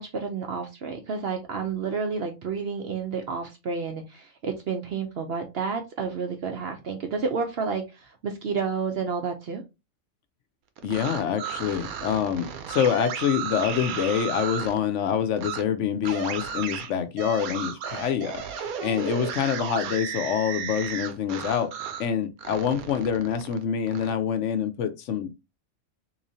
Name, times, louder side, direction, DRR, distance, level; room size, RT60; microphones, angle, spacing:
voice 1, 0.0-9.6, right 5 dB, 60° right, 0.7 m, -30 dB
voice 2, 10.8-21.7 22.0-25.4, left 8 dB, 65° left, 0.8 m, -26 dB
sound 1, 10.8-14.8 15.4-15.6 16.0-22.1 22.4-24.1, right 7 dB, 90° right, 1.1 m, -34 dB
4.0 x 3.0 x 2.6 m
omnidirectional pair, 1.5 m